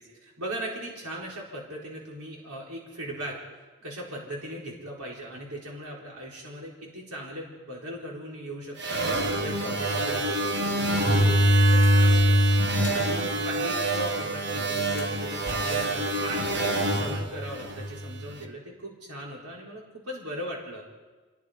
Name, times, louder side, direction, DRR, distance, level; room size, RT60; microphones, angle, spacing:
voice 1, 0.2-3.4 3.8-10.3 10.6-12.4 12.9-16.5 16.9-20.8, right 1 dB, 85° right, -3 dB, 4.3 m, -38 dB
sound 1, 8.8-18.2, right 1 dB, 50° right, 1.8 m, -24 dB
sound 2, 11.4-13.1 14.8-16.8, left 2 dB, 20° left, 3.4 m, -44 dB
27.0 x 20.5 x 5.1 m, 1.3 s
head